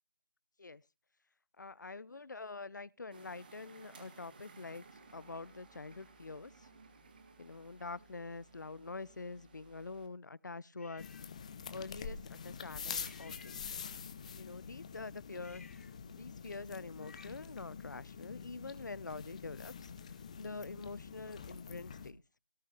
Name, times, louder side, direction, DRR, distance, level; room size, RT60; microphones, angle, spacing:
voice 1, 1.6-4.9 5.1-6.7 7.4-11.1 11.7-13.8 14.3-15.7 16.1-19.9 20.4-22.2, left 3 dB, 60° left, 0.6 m, -46 dB
sound 1, 3.1-10.1, right 4 dB, 25° right, 2.1 m, -59 dB
sound 2, 10.8-11.3 13.0-14.1 15.3-17.6, left 4 dB, 40° left, 1.3 m, -60 dB
sound 3, 11.0-22.1, left 6 dB, 20° left, 0.9 m, -46 dB
17.5 x 11.0 x 3.4 m
figure-of-eight pair, 165°, 11 cm